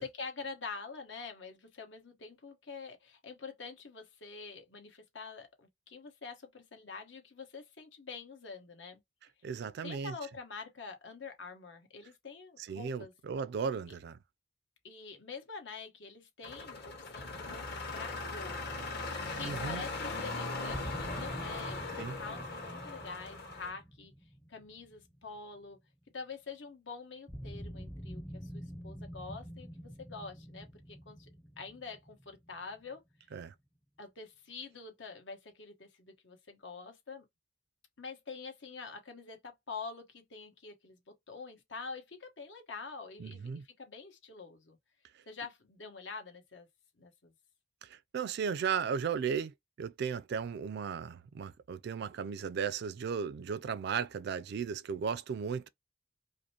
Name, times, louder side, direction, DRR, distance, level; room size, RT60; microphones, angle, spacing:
voice 1, 0.0-9.0 9.5-13.1 14.8-18.8 19.3-24.1 24.5-25.8 26.1-31.3 31.6-33.0 34.0-37.3 38.0-44.8 45.3-46.7 47.0-47.3, left 4 dB, 80° left, 1.2 m, -46 dB
voice 2, 9.4-10.1 12.7-14.2 19.4-19.8 22.0-22.2 33.3-33.5 43.2-43.6 47.8-55.7, right 6 dB, 60° right, 0.3 m, -36 dB
sound 1, 16.4-23.7, left 3 dB, 60° left, 1.6 m, -39 dB
sound 2, 20.7-25.6 27.3-32.9, equal, 10° left, 0.5 m, -46 dB
5.0 x 2.0 x 2.8 m
head